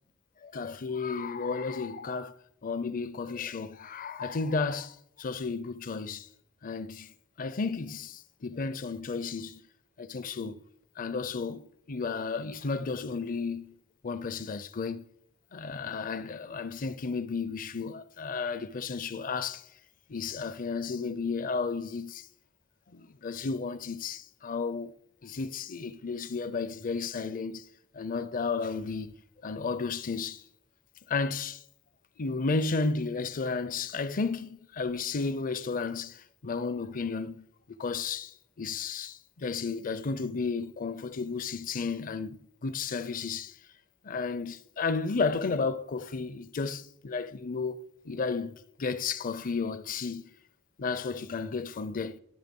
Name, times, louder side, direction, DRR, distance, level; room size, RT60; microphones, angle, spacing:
voice 1, 0.4-2.3 2.6-6.3 6.6-9.6 10.0-10.6 11.0-13.7 14.0-15.1 15.5-19.6 20.1-22.3 22.9-24.9 25.2-27.7 27.9-29.1 29.4-30.4 31.1-31.6 32.2-37.5 37.8-43.6 44.0-50.3 50.8-52.2, left 4 dB, 40° left, 0.5 m, -33 dB
11.5 x 6.6 x 5.3 m
head